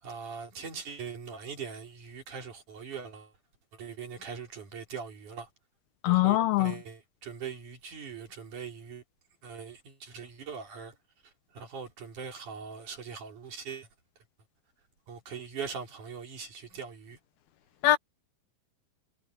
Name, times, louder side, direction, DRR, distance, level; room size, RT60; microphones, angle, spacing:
voice 1, 0.0-3.3 3.7-5.5 6.1-9.0 9.4-11.0 11.2-13.9 15.1-17.2, right 6 dB, 55° right, 5.3 m, -41 dB
voice 2, 6.0-6.7 17.8-18.0, left 16 dB, 80° left, 2.8 m, -22 dB
omnidirectional pair, 4.4 m